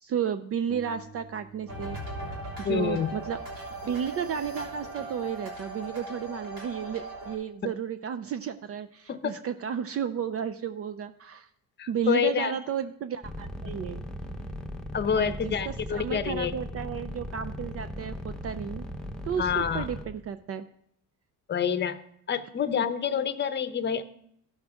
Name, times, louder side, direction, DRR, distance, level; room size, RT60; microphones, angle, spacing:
voice 1, 0.0-2.0 2.3-3.4 3.8-11.5 11.9-14.0 15.1-18.9 19.2-20.7 22.7-22.8, right 8 dB, 45° right, 10 dB, 0.4 m, -33 dB
sound 1, 0.7-3.9, right 2 dB, 20° right, 3.8 m, -51 dB
sound 2, 1.7-7.4, right 1 dB, 90° right, 3.2 m, -38 dB
voice 2, 2.6-3.1 9.1-9.4 11.8-12.5 13.6-13.7 14.9-16.5 19.4-19.9 21.5-22.0 22.3-24.0, left 7 dB, 30° left, 10 dB, 0.7 m, -27 dB
sound 3, 13.2-20.0, equal, ahead, 0.8 m, -37 dB
15.0 x 6.4 x 3.5 m, 0.71 s
cardioid pair, 115°, 34 cm